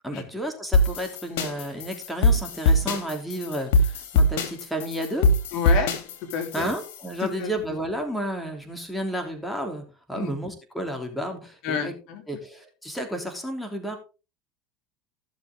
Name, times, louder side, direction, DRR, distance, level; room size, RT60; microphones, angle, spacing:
voice 1, 0.0-5.3 6.5-11.9 12.3-14.0, equal, ahead, 3 dB, 3.3 m, -32 dB
sound 1, 0.7-7.1, left 1 dB, 80° left, 3.0 m, -22 dB
voice 2, 5.5-5.9 6.3-6.7 7.2-7.5 10.1-10.3 11.6-12.2, left 6 dB, 60° left, 4 dB, 3.3 m, -29 dB
16.0 x 7.0 x 3.7 m, 0.33 s
supercardioid pair, 105°, 0 cm